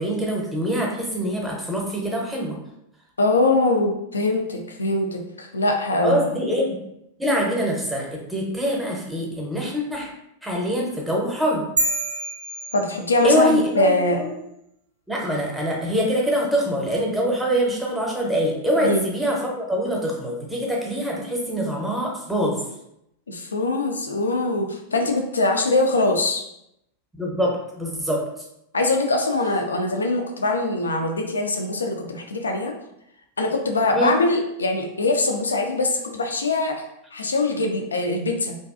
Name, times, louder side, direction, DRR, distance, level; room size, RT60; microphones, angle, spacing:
voice 1, 0.0-2.6 6.0-6.8 7.2-10.1 10.4-11.6 13.2-14.3 15.1-22.6 27.2-28.2 33.9-34.1, equal, 5° right, -2 dB, 0.7 m, -24 dB
voice 2, 3.2-6.3 12.7-14.2 18.8-19.0 23.3-26.4 28.7-32.7 33.4-36.8 37.1-38.6, left 2 dB, 75° left, 3 dB, 0.3 m, -22 dB
sound 1, 11.8-13.5, right 2 dB, 70° right, 0.4 m, -27 dB
2.5 x 2.2 x 2.4 m, 0.79 s
figure-of-eight pair, 90°, 0 cm